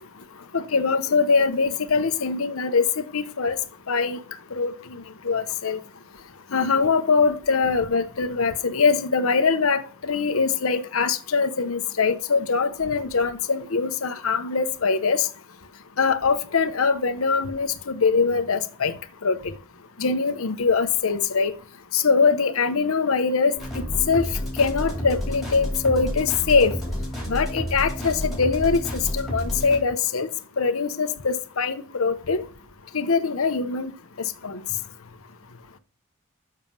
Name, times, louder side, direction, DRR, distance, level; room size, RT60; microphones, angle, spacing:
voice 1, 0.5-2.8 3.1-3.6 3.9-4.2 4.6-4.7 5.2-5.8 6.5-9.8 10.1-15.2 16.0-18.9 19.2-19.4 20.0-21.5 21.9-23.5 24.1-24.3 24.6-26.7 27.3-30.3 30.6-32.4 32.9-33.9 34.4-34.6, left 5 dB, 75° left, 0.9 m, -22 dB
sound 1, 23.6-29.8, equal, ahead, 4.1 m, -30 dB
7.2 x 6.4 x 5.4 m
head